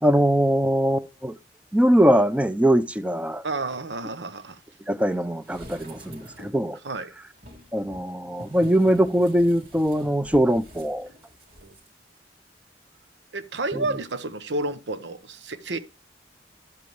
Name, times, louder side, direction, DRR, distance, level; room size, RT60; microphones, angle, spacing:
voice 1, 0.0-1.4 1.7-3.4 4.9-6.8 7.7-11.1 13.8-13.9, equal, 5° right, 0.6 m, -21 dB
voice 2, 3.4-4.6 6.8-7.1 11.6-11.7 13.3-15.8, right 2 dB, 80° right, 1.0 m, -30 dB
sound 1, 5.4-6.7 7.3-11.9 12.2-12.3, equal, 55° right, 2.1 m, -46 dB
12.0 x 7.4 x 3.2 m
head